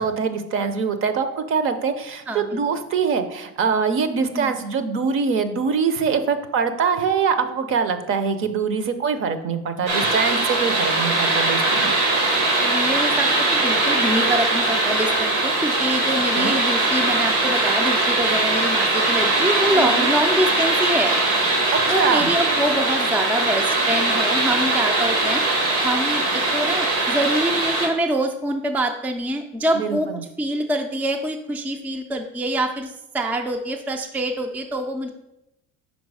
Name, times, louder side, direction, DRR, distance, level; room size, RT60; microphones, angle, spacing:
voice 1, 0.0-11.9 16.4-16.6 19.7-20.1 21.7-22.3 29.7-30.2, right 5 dB, 45° right, 10 dB, 0.6 m, -23 dB
voice 2, 2.3-2.6 4.3-4.6 12.6-21.2 21.9-25.4 25.8-30.1 30.4-35.1, right 1 dB, 5° right, 4 dB, 0.3 m, -25 dB
sound 1, 9.9-27.9, right 2 dB, 90° right, 1.7 m, -21 dB
5.3 x 4.6 x 4.7 m, 0.86 s
cardioid pair, 130°, 30 cm